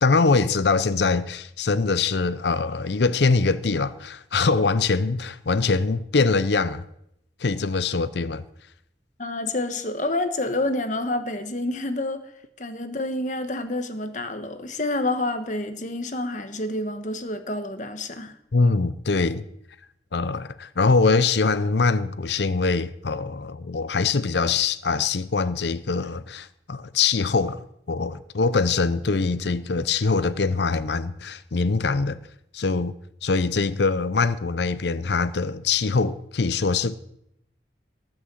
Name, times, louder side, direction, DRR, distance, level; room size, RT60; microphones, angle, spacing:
voice 1, 0.0-6.8 7.4-8.4 18.5-19.5 20.1-27.6 27.9-32.2 32.5-32.9 33.2-37.0, left 4 dB, 65° left, 0.6 m, -23 dB
voice 2, 9.2-12.3 12.6-18.3, left 2 dB, 40° left, 1.3 m, -28 dB
18.5 x 6.7 x 7.7 m
head